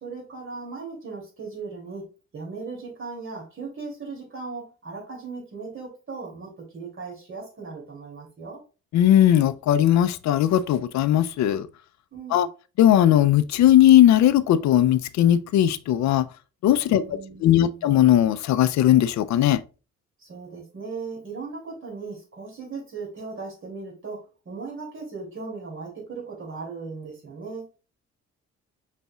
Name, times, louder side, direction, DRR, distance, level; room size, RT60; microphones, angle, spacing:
voice 1, 0.0-8.6 12.1-12.5 16.9-17.9 20.2-27.7, right 4 dB, 40° right, 2.7 m, -37 dB
voice 2, 8.9-11.7 12.3-12.5 12.8-16.3 16.6-17.0 17.4-19.6, left 11 dB, 65° left, 0.5 m, -18 dB
5.4 x 4.1 x 2.3 m
cardioid pair, 90°, 30 cm